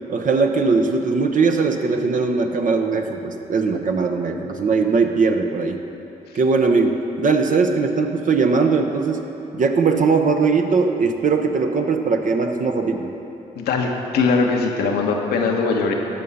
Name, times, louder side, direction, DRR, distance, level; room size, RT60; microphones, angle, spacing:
voice 1, 0.1-5.8 6.3-9.2 9.5-13.1, right 4 dB, 55° right, 4 dB, 0.9 m, -20 dB
voice 2, 13.5-15.9, left 4 dB, 80° left, 1 dB, 1.1 m, -20 dB
13.0 x 5.7 x 5.5 m, 2.9 s
supercardioid pair, 50°, 16 cm